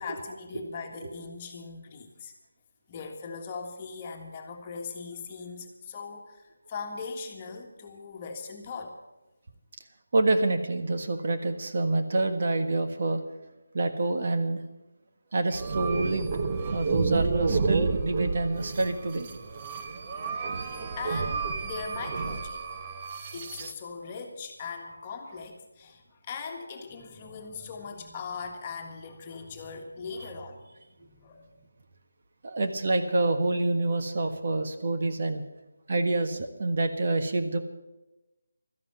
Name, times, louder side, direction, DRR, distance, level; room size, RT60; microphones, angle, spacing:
voice 1, 0.0-2.3 2.9-9.0 20.9-22.9 23.3-30.7 31.0-31.5, left 5 dB, 25° left, 3 dB, 1.7 m, -40 dB
voice 2, 10.1-13.2 13.7-14.6 15.3-16.3 16.7-19.3 32.4-35.4 35.9-37.6, right 2 dB, 45° right, 6 dB, 1.4 m, -27 dB
sound 1, 15.5-23.7, right 4 dB, 30° right, 1.0 m, -30 dB
13.0 x 11.0 x 8.1 m, 1.0 s
figure-of-eight pair, 160°, 0 cm